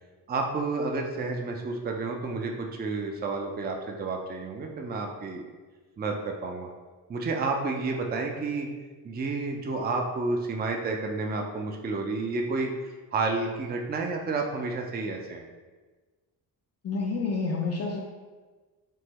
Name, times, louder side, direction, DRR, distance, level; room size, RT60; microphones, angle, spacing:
voice 1, 0.3-5.4 6.0-6.7 7.1-8.7 9.0-12.7 13.1-15.4, right 3 dB, 25° right, 2 dB, 0.4 m, -30 dB
voice 2, 16.8-18.0, left 4 dB, 35° left, 0 dB, 0.4 m, -29 dB
3.6 x 2.0 x 3.0 m, 1.3 s
supercardioid pair, 50°, 45 cm